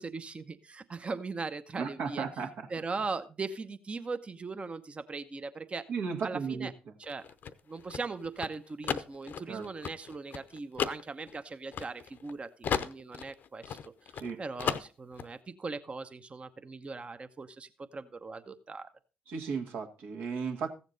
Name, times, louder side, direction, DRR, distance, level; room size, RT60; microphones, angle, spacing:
voice 1, 0.0-2.2 2.7-5.8 6.2-6.7 7.0-7.3 7.7-13.8 14.4-18.9, right 4 dB, 35° right, 10 dB, 0.9 m, -39 dB
voice 2, 1.8-2.7 5.9-6.7 9.5-9.7 14.1-14.4 19.3-20.7, right 5 dB, 65° right, 4 dB, 1.7 m, -35 dB
sound 1, 7.0-12.3 12.6-14.3 14.6-15.3, left 8 dB, 60° left, 0.7 m, -35 dB
15.0 x 7.2 x 4.0 m, 0.33 s
hypercardioid pair, 55°, 4 cm